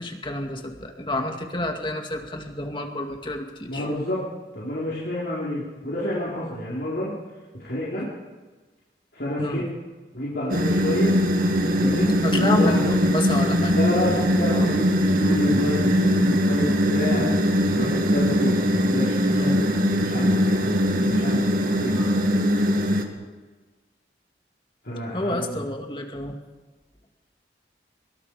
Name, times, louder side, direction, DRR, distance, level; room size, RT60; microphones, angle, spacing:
voice 1, 0.0-3.8 9.4-9.6 12.2-13.7 19.3-19.5 25.1-26.4, left 1 dB, 25° left, 3 dB, 2.4 m, -29 dB
voice 2, 3.7-4.2 4.5-7.1 7.6-8.1 9.1-9.6 10.1-11.2 11.8-12.9 13.7-17.2 17.7-19.5 19.9-22.1 24.8-25.6, left 1 dB, 65° left, -8 dB, 4.9 m, -29 dB
sound 1, 10.5-23.0, equal, 50° right, 2.3 m, -21 dB
25.0 x 23.0 x 5.1 m, 1.3 s
head